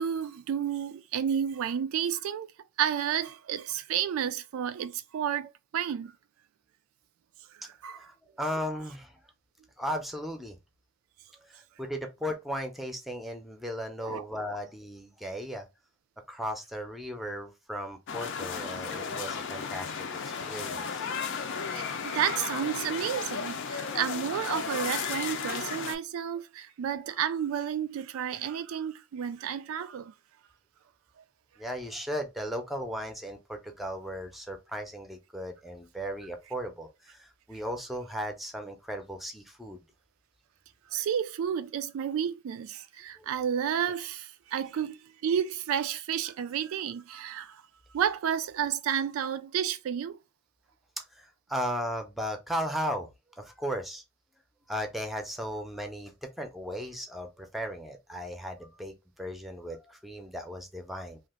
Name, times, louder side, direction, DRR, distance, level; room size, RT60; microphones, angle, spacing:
voice 1, 0.0-2.5 2.8-6.1 7.6-8.1 14.0-14.2 21.7-30.1 40.9-47.6 47.9-50.2, right 8 dB, 75° right, 0.3 m, -31 dB
voice 2, 8.0-9.2 9.8-10.6 11.3-15.7 16.3-20.1 20.4-21.1 31.6-39.8 43.2-43.3 51.0-53.1 53.4-54.0 54.7-61.2, equal, ahead, 0.6 m, -36 dB
sound 1, 18.1-25.9, left 6 dB, 60° left, 0.5 m, -34 dB
2.8 x 2.4 x 3.5 m
head